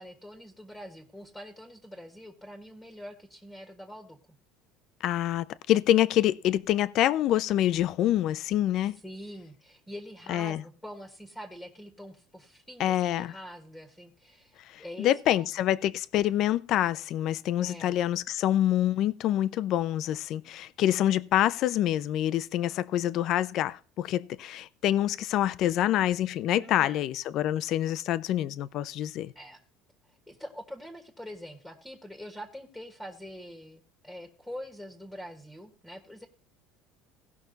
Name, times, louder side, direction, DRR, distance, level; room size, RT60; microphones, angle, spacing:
voice 1, 0.0-4.2 9.0-15.5 17.6-17.9 26.6-27.0 29.3-29.6 30.3-36.3, equal, ahead, 1.6 m, -44 dB
voice 2, 5.0-9.0 10.3-10.6 12.8-13.3 14.7-29.3, left 12 dB, 50° left, 0.6 m, -26 dB
17.5 x 6.0 x 4.0 m
cardioid pair, 155°, 0 cm